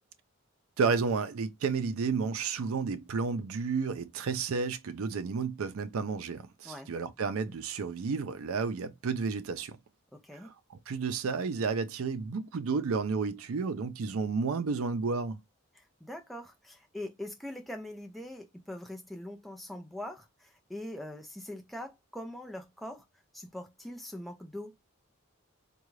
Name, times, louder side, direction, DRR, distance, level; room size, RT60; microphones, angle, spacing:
voice 1, 0.8-9.8 10.4-10.5 10.9-15.4, right 5 dB, 80° right, 0.4 m, -31 dB
voice 2, 10.1-10.5 15.7-23.0 23.3-24.8, left 1 dB, ahead, 0.5 m, -42 dB
3.6 x 2.2 x 3.1 m
head